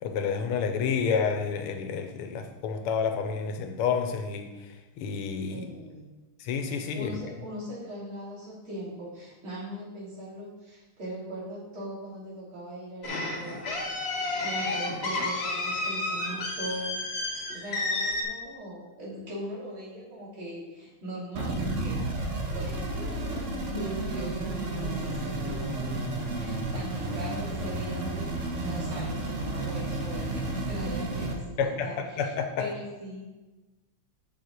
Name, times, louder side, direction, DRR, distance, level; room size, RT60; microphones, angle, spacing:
voice 1, 0.0-4.5 5.0-5.7 6.4-7.1 31.6-31.9 32.2-32.7, left 6 dB, 85° left, 6 dB, 1.7 m, -29 dB
voice 2, 5.5-6.0 6.9-33.3, equal, 70° right, -7 dB, 3.8 m, -40 dB
sound 1, 13.0-18.2, left 2 dB, 40° left, 1.0 m, -31 dB
sound 2, 21.3-31.3, right 2 dB, 40° right, 1.2 m, -32 dB
7.2 x 6.9 x 4.6 m, 1.1 s
omnidirectional pair, 2.4 m